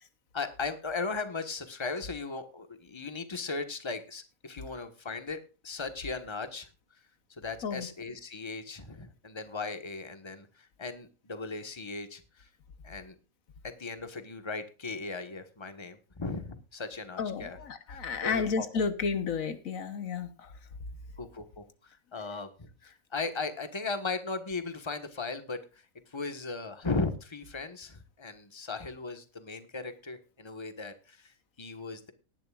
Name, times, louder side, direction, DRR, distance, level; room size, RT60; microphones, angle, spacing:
voice 1, 0.3-5.4 5.6-6.7 7.3-12.5 12.8-13.1 13.6-17.6 17.9-18.6 21.2-32.1, left 4 dB, 20° left, 9 dB, 1.4 m, -37 dB
voice 2, 17.2-20.5, left 5 dB, 75° left, 11 dB, 1.5 m, -32 dB
19.0 x 11.0 x 2.4 m, 0.33 s
omnidirectional pair, 1.4 m